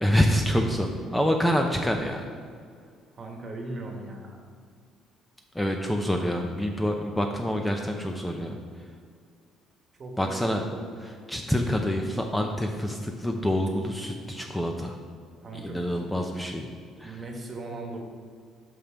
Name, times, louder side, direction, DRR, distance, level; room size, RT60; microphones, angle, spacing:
voice 1, 0.0-2.2 5.5-8.6 10.2-10.6 11.3-15.0 15.5-16.7 17.0-17.2, equal, 5° left, 3 dB, 0.5 m, -26 dB
voice 2, 3.1-4.4 10.0-10.8 15.4-16.2 17.0-18.0, right 2 dB, 35° right, 2 dB, 1.3 m, -38 dB
5.9 x 5.3 x 5.0 m, 2.1 s
cardioid pair, 100°, 0 cm